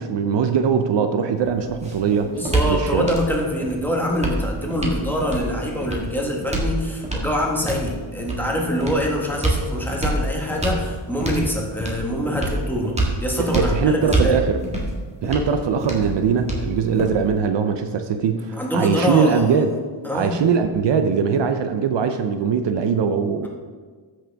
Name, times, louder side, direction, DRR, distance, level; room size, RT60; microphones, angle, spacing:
voice 1, 0.0-2.3 2.7-3.1 13.4-14.6 15.2-19.7 20.1-23.5, right 6 dB, 60° right, 8 dB, 0.7 m, -21 dB
sound 1, 1.4-17.4, right 1 dB, 15° right, 1.7 m, -27 dB
voice 2, 2.2-14.4 18.5-19.7 20.0-20.5, equal, 5° left, -2 dB, 1.5 m, -25 dB
14.0 x 6.5 x 3.5 m, 1.5 s
wide cardioid pair, 130°, 48 cm